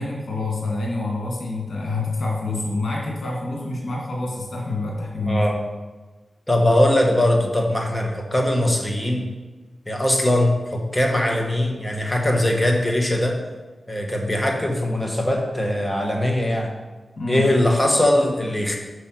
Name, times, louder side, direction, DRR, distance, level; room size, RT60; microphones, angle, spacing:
voice 1, 0.0-5.4 17.2-17.5, left 2 dB, 70° left, -2 dB, 2.3 m, -27 dB
voice 2, 5.3-5.6 6.5-9.3 9.9-13.3 13.9-16.7 17.3-18.8, left 1 dB, 15° left, 1 dB, 1.5 m, -21 dB
6.2 x 5.5 x 6.0 m, 1.2 s
cardioid pair, 55°, 0 cm